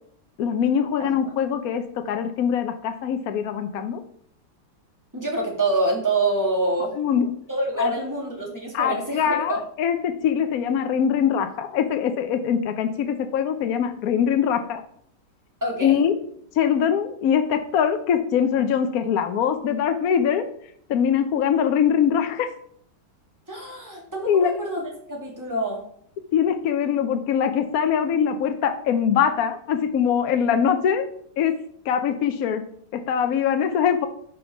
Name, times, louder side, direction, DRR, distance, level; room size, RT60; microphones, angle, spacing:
voice 1, 0.4-4.0 7.0-7.3 7.8-7.9 8.7-14.8 15.8-16.1 16.5-20.5 20.9-22.5 24.3-24.5 26.3-31.1 31.4-31.5 31.8-32.6 32.9-34.1, left 8 dB, 65° left, 7 dB, 0.9 m, -22 dB
voice 2, 5.1-6.9 7.5-9.6 15.6-16.0 23.5-25.8, right 2 dB, 10° right, -2 dB, 2.1 m, -26 dB
5.3 x 5.1 x 5.9 m, 0.66 s
omnidirectional pair, 2.0 m